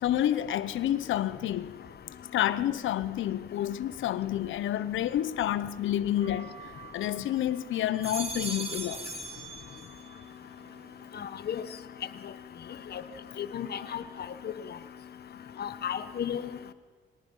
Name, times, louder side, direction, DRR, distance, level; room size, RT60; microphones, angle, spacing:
voice 1, 0.0-1.7 2.3-6.6 6.9-9.0, left 12 dB, 75° left, 1.0 m, -29 dB
sound 1, 6.2-7.4 7.8-10.2 10.6-11.2, right 3 dB, 30° right, 2.3 m, -40 dB
voice 2, 13.4-14.0 15.6-16.4, left 9 dB, 55° left, 1.4 m, -33 dB
25.0 x 18.5 x 5.6 m
cardioid pair, 90°, 20 cm